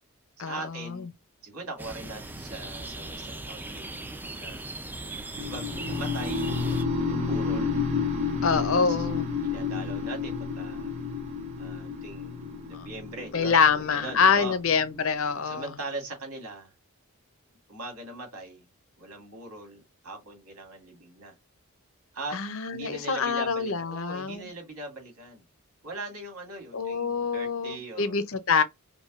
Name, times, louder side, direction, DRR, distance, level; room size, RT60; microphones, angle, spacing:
voice 1, 0.4-1.1 1.4-4.1 4.4-4.7 5.4-6.6 7.0-7.8 8.7-9.1 9.3-11.0 11.6-14.6 15.4-16.7 17.7-18.7 19.0-21.3 22.1-22.4 22.6-25.4 25.8-28.2, right 2 dB, 75° right, 2.3 m, -41 dB
sound 1, 1.8-6.8, right 2 dB, 10° right, 0.4 m, -39 dB
sound 2, 5.4-15.3, left 5 dB, 30° right, 1.1 m, -31 dB
voice 2, 8.4-9.3 12.7-12.9 13.3-15.6 22.3-24.5 26.7-28.6, left 5 dB, 60° left, 0.6 m, -25 dB
5.2 x 2.3 x 2.4 m
head